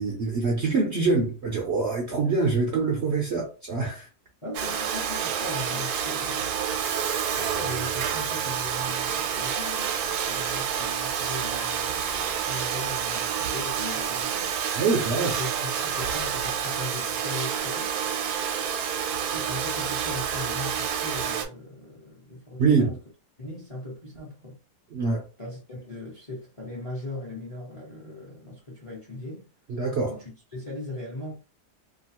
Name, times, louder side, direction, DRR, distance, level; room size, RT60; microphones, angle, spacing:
voice 1, 0.0-4.1 14.7-15.4 22.6-23.0 24.9-25.2 29.7-30.1, right 4 dB, 65° right, 0.7 m, -25 dB
voice 2, 4.4-6.5 7.4-14.5 15.4-17.9 19.3-22.9 23.4-24.6 25.4-29.5 30.0-31.4, left 1 dB, 30° left, 0.6 m, -38 dB
Domestic sounds home sounds, 4.5-21.4, right 8 dB, 80° right, 1.1 m, -28 dB
2.9 x 2.4 x 2.8 m
omnidirectional pair, 1.7 m